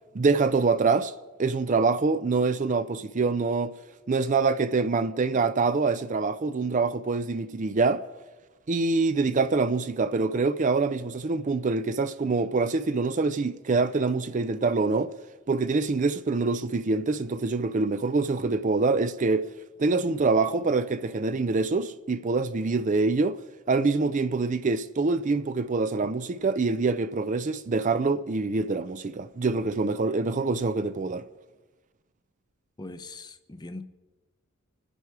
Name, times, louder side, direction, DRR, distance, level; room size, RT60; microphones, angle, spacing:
voice 1, 0.1-1.1 1.4-3.7 4.1-8.0 8.7-15.1 15.5-19.5 19.8-23.4 23.7-31.2, right 3 dB, 35° right, 0.4 m, -25 dB
voice 2, 32.8-33.8, left 2 dB, 20° left, 0.7 m, -41 dB
25.5 x 10.0 x 4.7 m
head